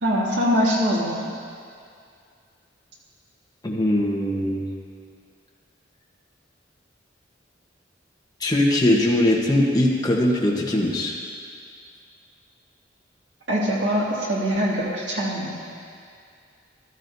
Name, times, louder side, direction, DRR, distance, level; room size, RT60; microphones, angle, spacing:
voice 1, 0.0-1.3 13.5-15.6, equal, 65° right, -5 dB, 2.4 m, -23 dB
voice 2, 3.6-4.7 8.4-11.2, left 1 dB, 20° left, -3 dB, 1.2 m, -21 dB
15.0 x 12.5 x 2.7 m, 2.3 s
head